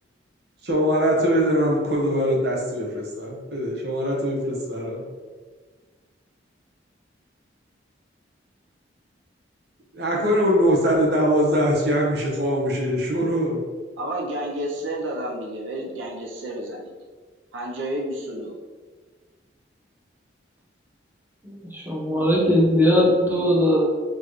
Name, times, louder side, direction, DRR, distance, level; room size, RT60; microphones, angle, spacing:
voice 1, 0.6-5.0 9.9-13.6, equal, 60° right, -2 dB, 0.9 m, -22 dB
voice 2, 14.0-16.9 17.5-18.6, right 1 dB, 90° right, -1 dB, 0.6 m, -30 dB
voice 3, 21.4-23.9, equal, 10° right, -4 dB, 0.7 m, -20 dB
4.4 x 3.1 x 3.0 m, 1.4 s
head